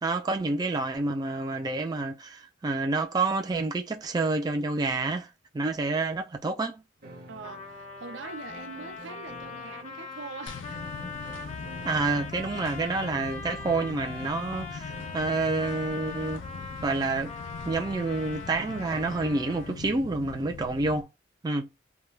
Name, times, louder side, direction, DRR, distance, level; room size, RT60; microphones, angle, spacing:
voice 1, 0.0-5.3 5.5-6.8 11.8-16.4 16.8-17.3 17.6-21.1 21.4-21.7, right 3 dB, 20° right, 0.4 m, -28 dB
sound 1, 7.0-15.4, right 1 dB, 50° right, 0.8 m, -50 dB
voice 2, 7.3-10.8, right 5 dB, 85° right, 0.5 m, -43 dB
Trumpet, 7.4-19.9, left 4 dB, 40° left, 0.7 m, -41 dB
sound 2, 10.5-21.0, left 4 dB, 80° left, 0.5 m, -41 dB
2.2 x 2.2 x 3.2 m
head